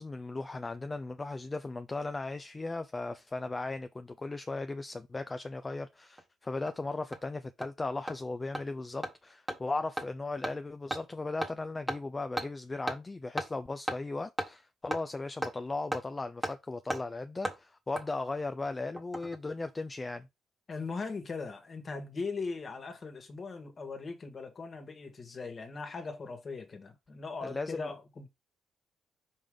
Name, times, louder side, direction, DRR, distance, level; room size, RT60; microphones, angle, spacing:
voice 1, 0.0-20.3 27.4-27.9, left 3 dB, 20° left, 0.6 m, -37 dB
Hammer, 6.2-6.3 6.7-6.8 7.1-7.2 7.6-7.7 8.1-8.2 8.5-8.6 9.0-9.1 9.5-9.6 10.0-10.1 10.4-10.5 10.9-11.0 11.4-11.5 11.9-12.0 12.4-12.5 12.9-13.0 13.4-13.5 13.9-14.0 14.4-14.5 14.9-15.0 15.4-15.5 15.9-16.0 16.4-16.5 16.9-17.0 17.4-17.6 18.0-18.1 19.0-19.4 19.6-19.7, right 1 dB, 10° right, 1.5 m, -34 dB
voice 2, 20.7-28.3, left 4 dB, 40° left, 1.7 m, -39 dB
5.4 x 4.9 x 3.7 m
cardioid pair, 90°, 0 cm